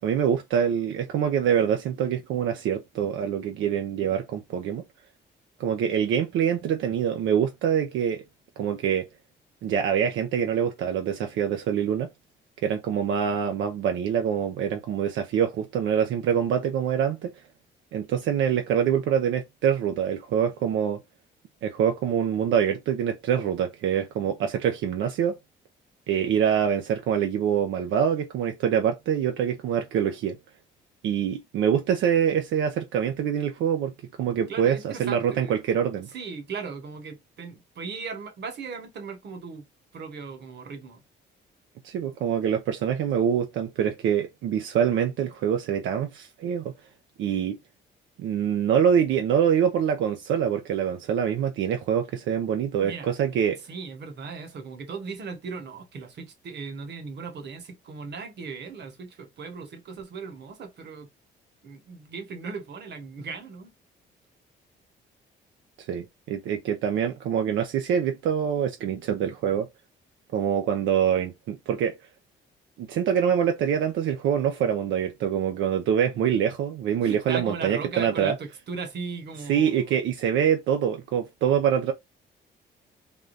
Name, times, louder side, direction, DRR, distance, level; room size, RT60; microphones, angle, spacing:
voice 1, 0.0-4.8 5.6-8.2 8.6-9.1 9.6-12.1 12.6-17.3 17.9-21.0 21.6-25.3 26.1-30.4 31.0-33.9 34.2-36.1 41.8-46.7 47.2-47.6 48.2-53.6 65.8-69.7 70.3-72.0 72.8-78.4 79.5-81.9, right 8 dB, 75° right, 0.5 m, -25 dB
voice 2, 34.5-35.6 36.1-39.6 39.9-41.0 52.8-53.1 53.7-61.1 61.6-63.7 77.0-79.9, right 5 dB, 60° right, 1.2 m, -37 dB
3.5 x 2.3 x 2.6 m
cardioid pair, 90°, 20 cm